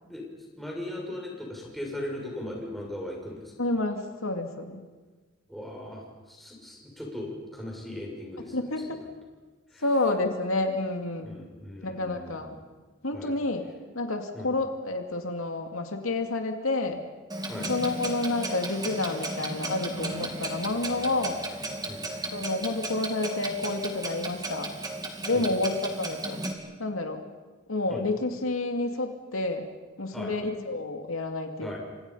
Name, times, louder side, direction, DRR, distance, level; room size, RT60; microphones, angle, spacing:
voice 1, 0.5-3.5 5.5-8.5 8.9-9.0 9.7-9.8 11.2-12.6 13.1-13.3 14.3-14.5 17.5-17.7 21.9-22.0 25.3-25.5 27.9-28.0 30.1-30.3 31.6-31.8, left 1 dB, ahead, -2 dB, 6.4 m, -38 dB
voice 2, 3.6-4.8 8.4-9.0 9.8-11.4 11.8-12.6 13.0-13.7 13.9-17.0 17.5-21.4 22.3-24.7 25.3-26.4 26.8-27.2 27.7-29.7 30.0-31.8, left 2 dB, 85° left, 4 dB, 2.4 m, -29 dB
Clock, 17.3-26.5, right 2 dB, 20° right, 2.6 m, -35 dB
29.5 x 26.0 x 5.7 m, 1.3 s
head